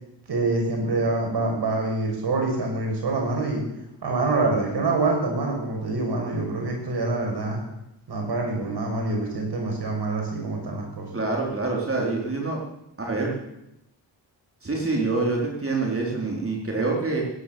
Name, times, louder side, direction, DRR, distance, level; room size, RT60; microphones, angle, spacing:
voice 1, 0.3-3.6 4.0-7.6 8.1-11.1, right 3 dB, 70° right, 1 dB, 6.1 m, -26 dB
voice 2, 11.1-12.6 13.0-13.3 14.6-17.2, right 3 dB, 30° right, -1 dB, 3.7 m, -26 dB
16.5 x 11.0 x 6.9 m, 0.86 s
cardioid pair, 75°, 41 cm